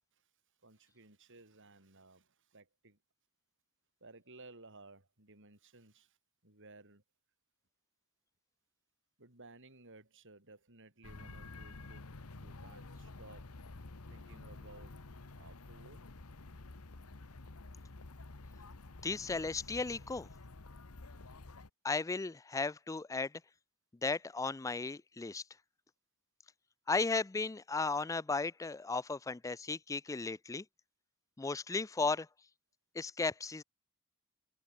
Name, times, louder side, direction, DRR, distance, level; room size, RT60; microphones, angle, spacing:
voice 1, 0.6-3.0 4.0-6.2 6.4-7.0 9.2-12.1 12.3-13.5 14.1-15.0 15.4-16.0, right 2 dB, 60° right, 6.7 m, -57 dB
sound 1, 11.0-21.7, left 2 dB, 80° left, 1.3 m, -50 dB
voice 2, 19.0-20.3 21.8-23.3 24.0-25.4 26.9-30.6 31.4-32.3 33.0-33.6, left 3 dB, 15° left, 0.4 m, -35 dB
head